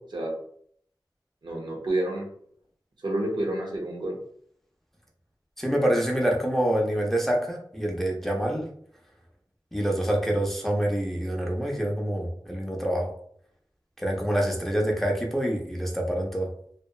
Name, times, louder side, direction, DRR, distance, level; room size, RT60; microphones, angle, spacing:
voice 1, 1.4-2.3 3.0-4.1, right 1 dB, 70° right, -1 dB, 0.7 m, -29 dB
voice 2, 5.6-8.7 9.7-13.1 14.0-16.5, right 1 dB, 5° left, -1 dB, 0.5 m, -26 dB
2.7 x 2.1 x 2.3 m, 0.62 s
wide cardioid pair, 65°, 8 cm